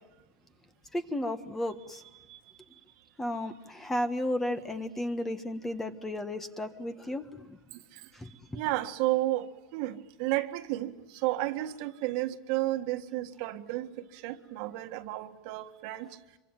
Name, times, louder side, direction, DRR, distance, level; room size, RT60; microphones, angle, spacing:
voice 1, 0.9-2.0 3.2-7.6 8.2-8.3, left 1 dB, 10° left, 10 dB, 1.4 m, -33 dB
voice 2, 7.7-8.1 8.5-16.2, right 16 dB, 55° right, 7 dB, 1.7 m, -32 dB
26.5 x 24.0 x 9.0 m, 1.0 s
supercardioid pair, 130°, 3 cm